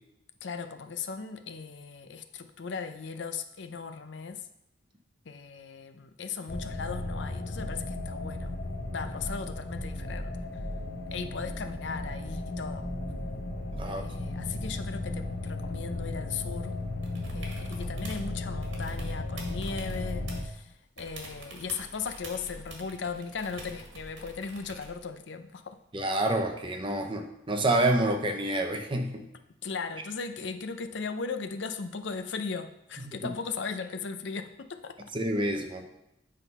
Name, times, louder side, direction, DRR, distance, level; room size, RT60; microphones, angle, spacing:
voice 1, 0.4-4.4 5.3-8.5 8.9-10.5 11.1-12.9 13.8-16.8 17.3-25.8 29.6-35.0, left 5 dB, 70° left, 8 dB, 0.6 m, -37 dB
sound 1, 6.5-20.4, left 2 dB, 50° left, 0.9 m, -35 dB
voice 2, 13.7-14.0 25.9-29.2 35.1-35.8, right 1 dB, 25° right, 4 dB, 0.8 m, -28 dB
sound 2, 17.0-18.3 18.6-20.6 21.0-25.0 26.9-27.0, right 2 dB, 80° right, 1.6 m, -46 dB
8.2 x 3.8 x 5.4 m, 0.85 s
head